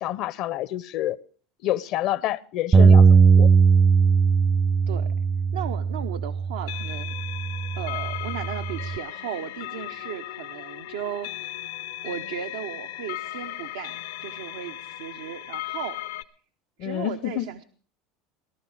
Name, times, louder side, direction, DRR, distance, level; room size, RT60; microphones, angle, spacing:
voice 1, 0.0-1.2 1.6-3.0 3.4-3.5 16.8-17.5, left 13 dB, 60° left, 19 dB, 0.7 m, -28 dB
Bass guitar, 2.7-9.0, right 5 dB, 30° right, 0.6 m, -19 dB
voice 2, 5.5-7.2 7.7-11.7 12.0-16.0 16.8-17.6, right 9 dB, 85° right, 7 dB, 0.9 m, -36 dB
sound 1, 6.6-16.2, left 14 dB, 85° left, 0.9 m, -36 dB
18.0 x 12.0 x 4.9 m, 0.43 s
supercardioid pair, 95°, 0 cm